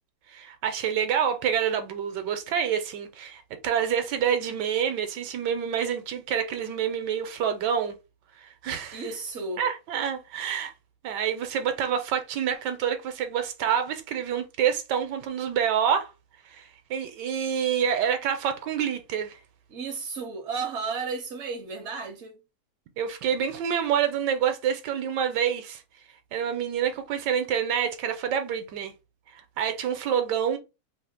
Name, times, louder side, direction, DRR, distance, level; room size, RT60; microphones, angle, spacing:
voice 1, 0.3-8.0 8.4-9.1 9.6-10.7 11.0-16.1 16.5-19.4 23.0-25.8 26.3-28.9 29.3-30.6, right 8 dB, 80° right, 1.2 m, -27 dB
voice 2, 8.9-9.6 19.7-22.4, right 4 dB, 65° right, 0.7 m, -33 dB
3.0 x 2.4 x 3.4 m
omnidirectional pair, 1.9 m